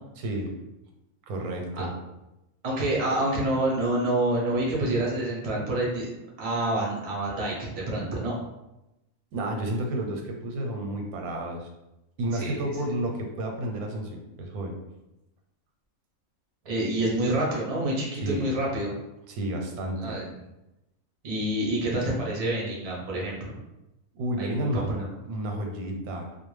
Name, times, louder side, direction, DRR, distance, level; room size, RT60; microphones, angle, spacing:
voice 1, 0.2-0.5 1.3-1.9 9.3-11.7 12.2-14.8 18.2-18.5 19.3-20.2 24.1-26.4, right 1 dB, 90° right, 2 dB, 1.1 m, -31 dB
voice 2, 2.6-6.1 6.4-8.4 12.4-12.5 16.6-18.9 20.0-20.3 21.2-23.5 24.4-24.8, right 1 dB, 40° right, -4 dB, 0.5 m, -27 dB
2.4 x 2.2 x 3.1 m, 0.94 s
omnidirectional pair, 1.5 m